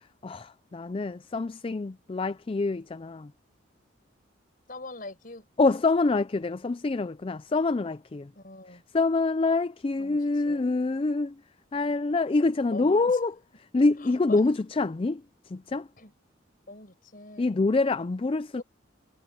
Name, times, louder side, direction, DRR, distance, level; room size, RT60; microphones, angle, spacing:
voice 1, 0.2-3.3 5.6-8.3 8.9-11.4 11.7-13.3 13.7-15.8 17.4-18.6, left 3 dB, 30° left, 0.4 m, -26 dB
voice 2, 4.7-5.5 8.4-8.8 10.0-10.2 10.4-10.7 12.7-13.2 14.0-14.4 15.7-16.1 16.7-17.5 18.5-18.6, left 2 dB, 45° left, 5.3 m, -43 dB
head